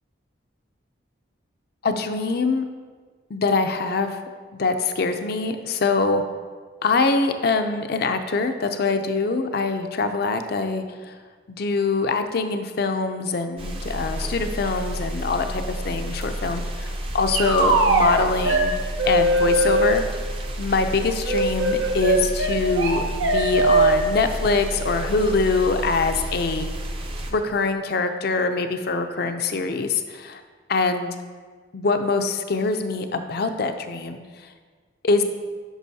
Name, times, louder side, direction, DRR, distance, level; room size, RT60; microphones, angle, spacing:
voice 1, 1.8-2.6 3.3-4.2 4.6-6.2 6.8-11.1 11.5-18.8 19.0-20.0 20.6-23.0 23.3-26.7 27.3-30.4 30.7-31.1 31.7-34.2 35.0-35.2, left 3 dB, 50° left, 7 dB, 0.5 m, -24 dB
sound 1, 13.6-27.3, equal, 30° right, 0.6 m, -31 dB
sound 2, 17.3-18.1 18.4-18.6 19.0-20.0 21.2-24.0, right 2 dB, 85° right, 1.0 m, -20 dB
11.0 x 5.9 x 2.7 m, 1.5 s
head